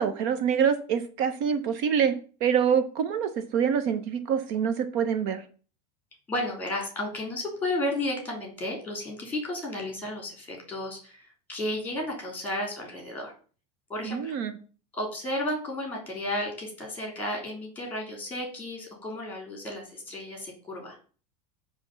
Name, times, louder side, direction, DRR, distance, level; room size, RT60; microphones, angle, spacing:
voice 1, 0.0-2.1 2.4-5.4 14.0-14.6, right 7 dB, 55° right, 10 dB, 0.9 m, -25 dB
voice 2, 6.3-13.3 13.9-14.3 14.9-20.9, left 1 dB, 10° left, 2 dB, 3.3 m, -33 dB
9.5 x 3.5 x 6.8 m, 0.40 s
supercardioid pair, 160°, 19 cm